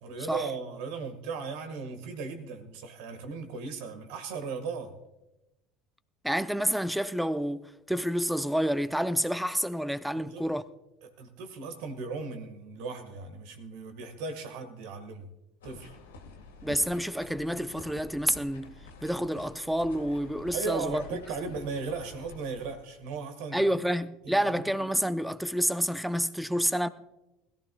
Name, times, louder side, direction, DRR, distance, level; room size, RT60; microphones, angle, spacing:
voice 1, 0.0-5.0 10.1-10.5 11.0-15.3 15.6-16.0 20.5-23.6 24.2-24.7, right 4 dB, 65° right, 1.7 m, -37 dB
voice 2, 6.2-10.6 16.6-18.7 19.0-21.0 23.5-26.9, equal, 5° right, 0.6 m, -29 dB
sound 1, 15.6-23.2, left 3 dB, 80° left, 1.8 m, -49 dB
21.0 x 14.0 x 2.3 m
figure-of-eight pair, 65°, 0 cm